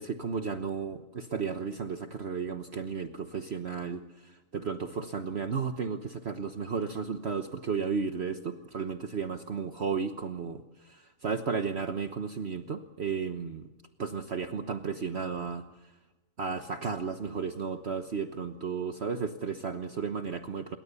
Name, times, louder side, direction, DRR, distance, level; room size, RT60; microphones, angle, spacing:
voice 1, 0.0-13.7 14.0-15.6 16.4-20.8, right 5 dB, 50° right, 7 dB, 1.4 m, -34 dB
28.0 x 22.5 x 7.0 m, 1.1 s
omnidirectional pair, 1.4 m